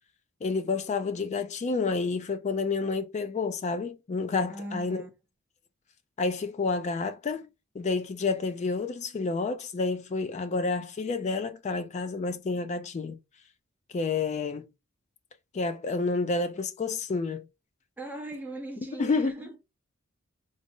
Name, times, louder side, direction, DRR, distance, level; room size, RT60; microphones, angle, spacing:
voice 1, 0.4-5.0 6.2-7.5 7.7-13.2 13.9-14.6 15.5-17.5 19.0-19.3, left 4 dB, 35° left, 0.3 m, -29 dB
voice 2, 4.5-5.1 18.0-19.5, right 1 dB, 10° right, 0.7 m, -39 dB
3.9 x 2.0 x 3.6 m
head